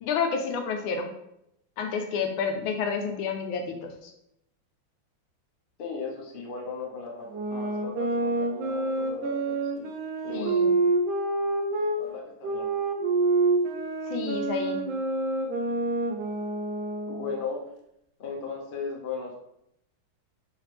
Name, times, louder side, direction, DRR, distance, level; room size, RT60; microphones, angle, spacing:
voice 1, 0.0-1.1 1.8-4.1 10.3-10.7 14.1-14.8, left 6 dB, 80° left, 4 dB, 1.3 m, -30 dB
voice 2, 5.8-9.9 10.2-10.6 12.0-12.7 17.1-17.6 18.2-19.4, left 4 dB, 60° left, -1 dB, 0.5 m, -37 dB
sound 1, 7.3-12.0 12.4-17.4, right 2 dB, 75° right, 1.4 m, -27 dB
4.7 x 3.3 x 3.2 m, 0.79 s
omnidirectional pair, 2.3 m